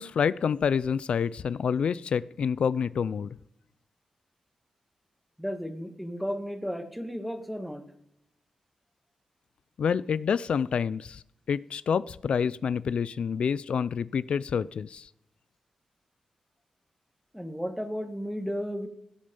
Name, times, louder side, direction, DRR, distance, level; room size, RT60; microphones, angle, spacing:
voice 1, 0.0-3.3 9.8-11.2 11.5-15.1, left 7 dB, 65° left, 19 dB, 0.4 m, -28 dB
voice 2, 5.4-7.8 17.3-18.9, equal, ahead, 7 dB, 1.6 m, -34 dB
16.5 x 8.7 x 5.4 m, 0.80 s
wide cardioid pair, 115°, 2 cm